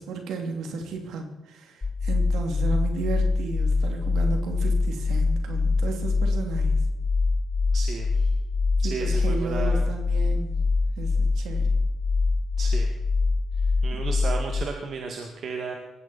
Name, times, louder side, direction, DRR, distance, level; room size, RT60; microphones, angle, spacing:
voice 1, 0.0-6.7 8.8-10.6 11.0-11.7, right 4 dB, 80° right, 4 dB, 2.7 m, -34 dB
sound 1, 1.8-14.7, left 3 dB, 25° left, 0.8 m, -24 dB
voice 2, 7.7-8.3 8.8-9.9 12.6-12.9 13.8-15.7, right 5 dB, 60° right, 2 dB, 2.1 m, -33 dB
19.5 x 15.0 x 4.3 m, 1.1 s
cardioid pair, 90°, 0 cm